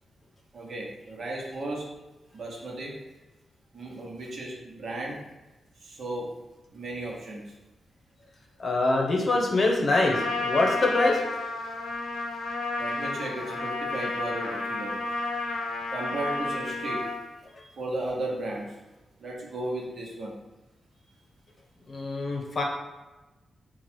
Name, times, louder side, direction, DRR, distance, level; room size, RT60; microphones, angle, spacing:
voice 1, 0.5-1.9 2.3-2.9 3.7-5.2 5.8-6.3 6.7-7.4 12.8-15.0 15.9-17.1 17.8-18.8 19.2-20.3, right 1 dB, 50° right, -3 dB, 1.1 m, -35 dB
voice 2, 8.6-11.2 21.9-22.6, left 2 dB, 40° left, 0 dB, 0.8 m, -24 dB
Trumpet, 9.9-17.2, left 2 dB, 80° left, 0.7 m, -31 dB
4.6 x 2.4 x 4.5 m, 1.1 s
wide cardioid pair, 130°, 0 cm